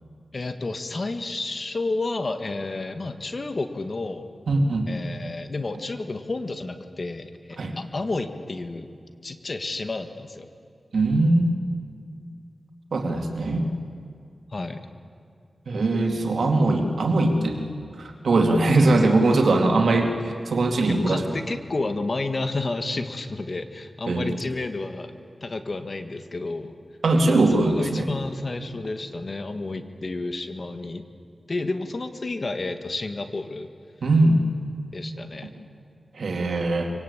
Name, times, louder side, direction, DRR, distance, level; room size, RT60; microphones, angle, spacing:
voice 1, 0.3-4.3 4.9-8.9 9.2-10.5 14.5-14.9 20.9-25.1 25.4-26.7 27.3-31.0 31.5-33.7 34.9-35.5, left 3 dB, 55° left, 8 dB, 1.6 m, -31 dB
voice 2, 4.5-4.9 7.6-7.7 10.9-11.5 12.9-13.7 15.7-17.6 18.2-21.2 24.1-24.3 27.0-28.1 34.0-34.4 36.2-36.9, right 2 dB, 80° right, 3 dB, 2.4 m, -21 dB
24.0 x 18.0 x 8.6 m, 2.4 s
cardioid pair, 45°, 0 cm